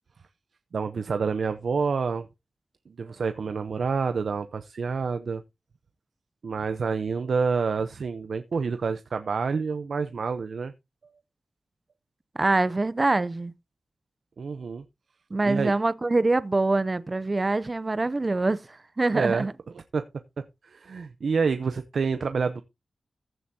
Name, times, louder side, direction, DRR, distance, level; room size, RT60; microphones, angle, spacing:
voice 1, 0.7-2.3 3.0-5.4 6.4-10.7 14.4-14.8 15.4-15.7 19.1-19.5 19.9-20.0 20.6-22.6, right 5 dB, 70° right, 0.7 m, -28 dB
voice 2, 12.4-13.5 15.3-19.5, right 2 dB, 25° right, 0.5 m, -24 dB
15.0 x 7.8 x 2.7 m
wide cardioid pair, 140°, 0 cm